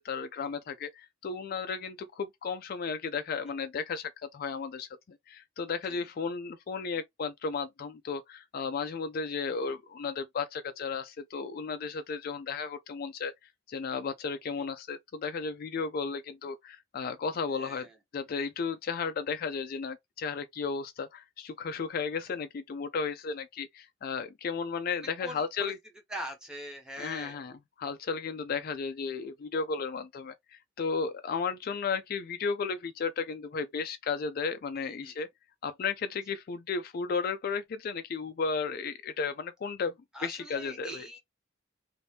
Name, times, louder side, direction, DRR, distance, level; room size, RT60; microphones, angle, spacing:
voice 1, 0.0-4.9 5.3-13.3 13.7-17.9 18.1-25.8 27.0-27.5 27.8-35.3 35.6-39.9 40.2-41.1, left 5 dB, 45° left, 0.3 m, -34 dB
voice 2, 17.5-18.0 25.0-25.7 26.1-27.5 34.8-35.1 40.1-41.2, right 1 dB, 5° right, 0.9 m, -42 dB
2.7 x 2.6 x 3.2 m
head